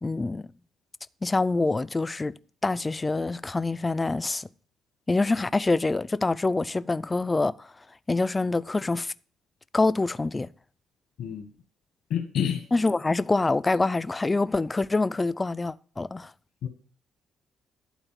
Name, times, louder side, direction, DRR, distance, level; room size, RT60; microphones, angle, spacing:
voice 1, 0.0-0.5 1.2-2.3 2.6-4.5 5.1-7.7 8.1-9.1 9.7-10.5 12.7-16.3, left 3 dB, 20° left, 0.4 m, -25 dB
voice 2, 11.2-11.5 12.1-12.6 16.6-16.7, left 9 dB, 80° left, 1.4 m, -28 dB
11.5 x 4.3 x 7.4 m
cardioid pair, 90°, 0 cm